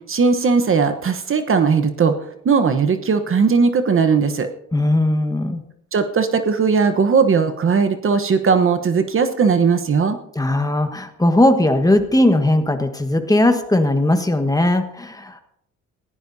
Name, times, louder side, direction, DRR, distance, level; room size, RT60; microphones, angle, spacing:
voice 1, 0.1-2.2 2.4-4.5 5.9-10.2, right 5 dB, 45° right, 9 dB, 1.1 m, -18 dB
voice 2, 4.7-5.6 10.3-15.4, left 1 dB, 10° left, 7 dB, 1.4 m, -18 dB
23.0 x 16.0 x 2.8 m, 0.77 s
cardioid pair, 90°, 30 cm